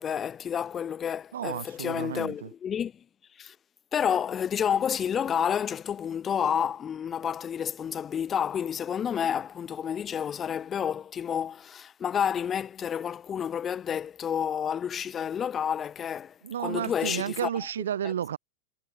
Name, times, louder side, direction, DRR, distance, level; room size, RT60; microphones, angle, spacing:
voice 1, 0.0-3.0 3.4-3.5 3.9-17.5 18.0-18.1, left 8 dB, 25° left, 4.2 m, -30 dB
voice 2, 1.3-2.5 16.4-18.4, right 9 dB, 65° right, 4.6 m, -32 dB
figure-of-eight pair, 90°, 0 cm